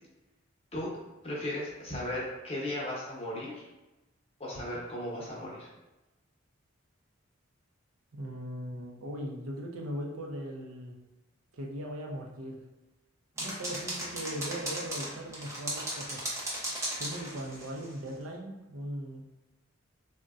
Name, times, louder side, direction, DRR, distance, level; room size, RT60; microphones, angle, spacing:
voice 1, 1.2-3.6 4.4-5.7, left 1 dB, 30° left, -4 dB, 0.7 m, -36 dB
voice 2, 8.1-11.0 11.6-12.6 13.4-16.3 16.9-19.2, equal, 85° right, 0 dB, 0.5 m, -39 dB
sound 1, 13.4-17.9, right 1 dB, 15° right, 0.5 m, -36 dB
3.8 x 2.1 x 2.3 m, 1.0 s
head